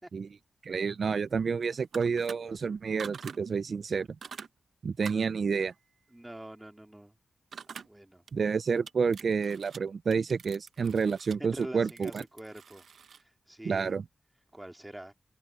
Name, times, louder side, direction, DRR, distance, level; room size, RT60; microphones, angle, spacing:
voice 1, 0.6-4.1 4.8-5.7 8.3-12.2 13.6-14.0, right 5 dB, 60° right, 0.3 m, -29 dB
sound 1, 1.8-2.4 3.0-3.4 4.2-4.5 5.0-5.3 7.5-7.9 8.3-8.4 8.9-9.8 10.1-13.2, right 6 dB, 85° right, 0.9 m, -45 dB
voice 2, 6.1-7.1 7.7-8.2 11.4-12.8 13.5-14.0 14.5-15.1, right 1 dB, 10° right, 2.4 m, -45 dB
open air
wide cardioid pair, 120°, 0 cm